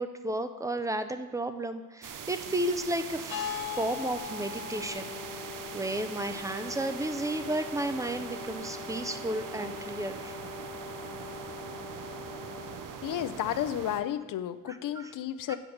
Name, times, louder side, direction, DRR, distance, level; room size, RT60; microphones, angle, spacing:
voice 1, 0.0-5.4 5.7-10.3 14.7-15.1 15.5-15.6, right 1 dB, 10° right, 9 dB, 0.4 m, -33 dB
sound 1, 2.0-14.0, right 7 dB, 70° right, 0.7 m, -42 dB
sound 2, 3.3-8.6, left 10 dB, 90° left, 1.0 m, -41 dB
Brass instrument, 4.7-13.4, left 6 dB, 20° left, 0.7 m, -44 dB
voice 2, 13.0-15.6, left 11 dB, 70° left, 12 dB, 0.5 m, -32 dB
8.7 x 4.6 x 6.4 m, 1.2 s
wide cardioid pair, 145°, 34 cm